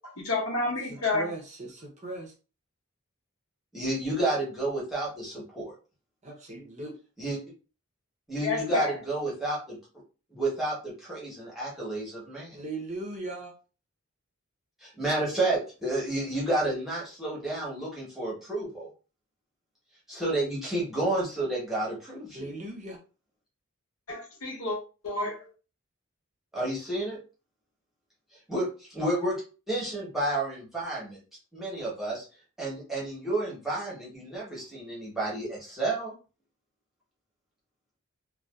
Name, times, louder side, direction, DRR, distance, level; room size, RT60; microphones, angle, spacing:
voice 1, 0.2-1.3 8.4-9.0 24.1-24.8 25.0-25.5, left 3 dB, 80° left, -2 dB, 1.0 m, -30 dB
voice 2, 0.9-2.3 6.2-7.0 12.5-13.5 22.3-23.0, right 2 dB, 30° right, -1 dB, 0.6 m, -38 dB
voice 3, 3.7-5.7 7.2-7.4 8.3-9.8 10.3-12.6 14.8-18.9 20.1-22.5 26.5-27.2 28.5-29.4 29.7-31.2 31.5-32.3 32.6-36.1, right 2 dB, ahead, -7 dB, 0.9 m, -30 dB
2.6 x 2.3 x 2.3 m, 0.34 s
head